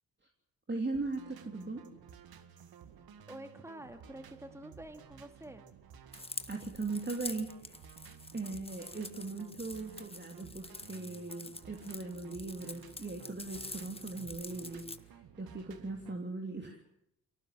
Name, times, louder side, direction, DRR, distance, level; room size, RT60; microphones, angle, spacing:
voice 1, 0.7-1.8 6.5-7.8 8.3-16.8, right 3 dB, 25° right, 2 dB, 3.4 m, -39 dB
sound 1, 0.9-16.2, right 8 dB, 65° right, 2.0 m, -55 dB
voice 2, 3.3-5.7, right 1 dB, 5° right, 8 dB, 2.4 m, -48 dB
sound 2, 6.1-15.0, left 2 dB, 15° left, 1.7 m, -46 dB
24.0 x 18.0 x 7.7 m, 0.78 s
hypercardioid pair, 45°, 39 cm